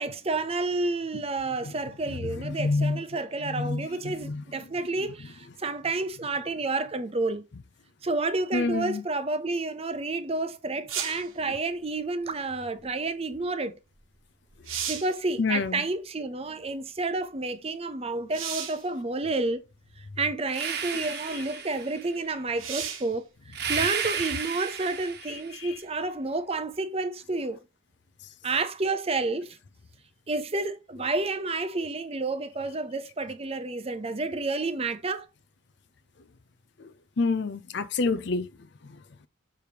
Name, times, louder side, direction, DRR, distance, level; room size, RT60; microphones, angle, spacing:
voice 1, 0.0-7.5 8.0-13.8 14.9-19.6 20.0-27.6 28.4-29.6 30.3-35.3, right 3 dB, 30° right, 0.6 m, -30 dB
voice 2, 2.1-3.0 3.4-4.7 8.5-9.0 15.4-15.8 20.9-21.4 25.3-25.8 36.8-38.5 38.8-39.0, left 3 dB, 55° left, 0.5 m, -29 dB
sound 1, 10.9-11.3 14.0-14.1 14.5-15.2 18.3-18.9 19.9-20.0 22.6-23.1 26.7-26.8, right 8 dB, 85° right, 1.4 m, -34 dB
sound 2, 20.5-22.1 23.5-25.6, right 7 dB, 50° right, 1.2 m, -33 dB
6.7 x 5.0 x 2.9 m
head